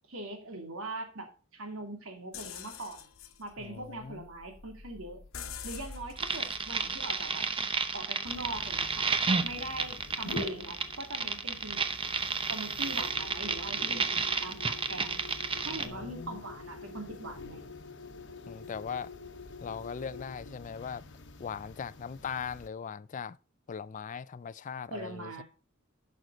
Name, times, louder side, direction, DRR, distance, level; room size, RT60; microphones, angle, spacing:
voice 1, 0.1-3.1 3.4-5.2 5.6-7.4 7.9-9.1 9.4-11.9 12.5-14.1 14.4-15.2 15.6-17.6 24.9-25.4, right 2 dB, 85° right, 2.7 m, -41 dB
sound 1, 2.3-8.1, left 6 dB, 85° left, 1.0 m, -47 dB
voice 2, 3.6-4.2 15.7-16.4 18.5-19.1 19.6-21.0 21.4-23.4 23.7-25.4, left 6 dB, 40° left, 0.4 m, -39 dB
sound 2, 6.2-15.9, right 5 dB, 25° right, 0.8 m, -31 dB
sound 3, 8.3-22.7, left 3 dB, 60° left, 1.1 m, -46 dB
11.0 x 6.4 x 4.0 m
head